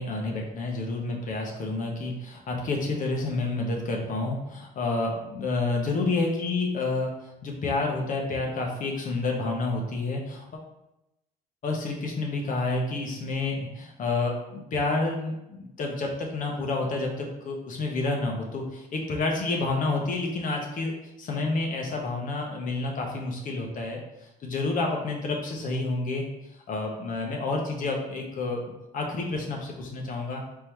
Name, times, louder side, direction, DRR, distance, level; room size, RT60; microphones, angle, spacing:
voice 1, 0.0-10.6 11.6-20.9 21.2-26.3 26.7-28.6 28.9-30.4, left 3 dB, 55° left, 0 dB, 1.0 m, -29 dB
4.1 x 3.8 x 3.0 m, 0.90 s
cardioid pair, 110°, 17 cm